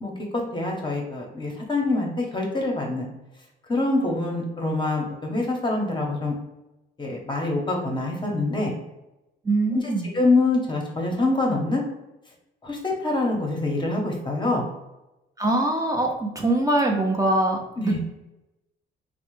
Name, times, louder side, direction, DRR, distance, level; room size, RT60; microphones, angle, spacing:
voice 1, 0.0-3.1 3.7-6.3 7.0-8.8 9.7-11.8 12.6-14.6 17.8-18.0, left 2 dB, 25° left, 0 dB, 0.7 m, -25 dB
voice 2, 9.5-10.1 15.4-17.6 17.8-18.0, right 2 dB, 15° right, 0 dB, 0.5 m, -23 dB
3.2 x 2.1 x 3.1 m, 0.97 s
cardioid pair, 90°, 20 cm